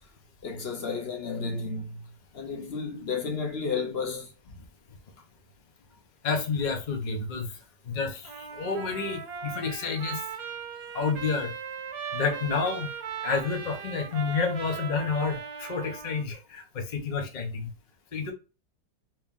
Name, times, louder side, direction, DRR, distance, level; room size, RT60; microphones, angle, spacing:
voice 1, 0.4-2.0 2.3-4.3, left 5 dB, 55° left, 0.7 m, -32 dB
voice 2, 6.2-7.5 7.9-10.2 10.9-11.5 12.1-12.9 13.2-17.7 18.1-18.3, left 4 dB, 85° left, 0.4 m, -29 dB
Trumpet, 8.2-16.3, right 7 dB, 65° right, 1.1 m, -38 dB
3.0 x 2.9 x 3.5 m
omnidirectional pair, 1.9 m